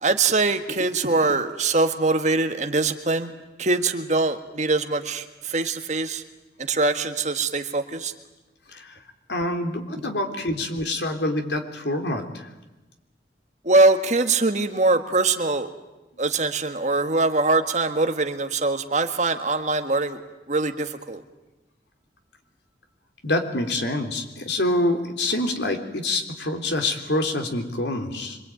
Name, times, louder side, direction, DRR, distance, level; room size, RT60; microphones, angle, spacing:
voice 1, 0.0-3.3 3.6-6.2 6.7-8.1 10.0-10.1 13.6-15.7 16.2-20.2 20.5-21.2, right 3 dB, 40° right, 7 dB, 1.7 m, -23 dB
voice 2, 9.3-12.5 23.2-28.4, left 1 dB, 80° left, 5 dB, 3.4 m, -26 dB
25.5 x 24.0 x 9.2 m, 1.1 s
head